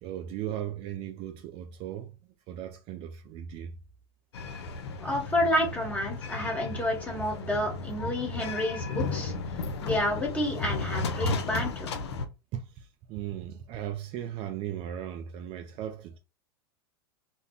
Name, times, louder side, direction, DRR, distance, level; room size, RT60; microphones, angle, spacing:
voice 1, 0.0-2.2 2.5-3.8 12.5-16.2, right 10 dB, 40° right, 0.4 m, -37 dB
sound 1, 4.3-12.3, left 3 dB, 80° left, 0.6 m, -34 dB
voice 2, 5.0-9.3 9.8-11.9, left 1 dB, 10° left, 1.2 m, -29 dB
2.3 x 2.1 x 3.6 m
hypercardioid pair, 110°, 14 cm